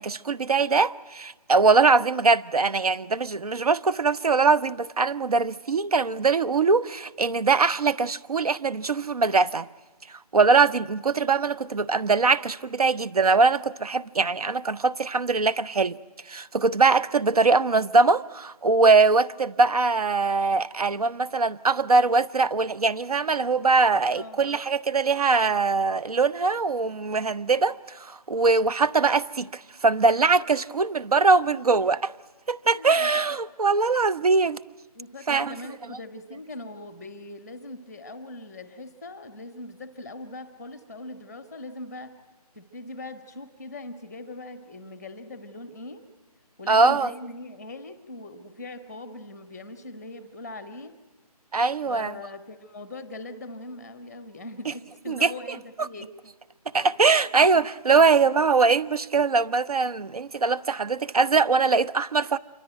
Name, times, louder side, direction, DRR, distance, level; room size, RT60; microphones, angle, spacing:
voice 1, 0.0-9.7 10.3-16.0 16.3-32.0 32.5-34.6 35.3-35.5 46.7-47.1 51.5-52.1 55.1-55.3 55.8-55.9 56.7-62.4, right 4 dB, 70° right, 1.0 m, -22 dB
voice 2, 24.1-24.5 31.5-31.7 32.6-33.2 34.9-42.2 42.5-46.0 46.6-50.9 51.9-56.1, left 2 dB, 5° right, 0.8 m, -41 dB
27.0 x 24.5 x 9.1 m
figure-of-eight pair, 170°, 20 cm